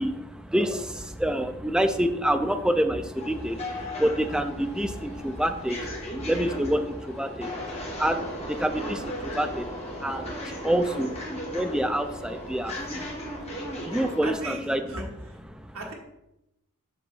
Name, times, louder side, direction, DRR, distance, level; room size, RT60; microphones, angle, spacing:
voice 1, 0.0-14.8 15.5-15.8, right 1 dB, 5° right, 7 dB, 0.4 m, -28 dB
sound 1, 3.1-14.3, equal, 30° left, 1.8 m, -36 dB
voice 2, 14.2-15.0 15.3-15.4 15.7-15.9, right 2 dB, 70° right, -1 dB, 1.7 m, -36 dB
7.2 x 3.9 x 6.2 m, 0.88 s
head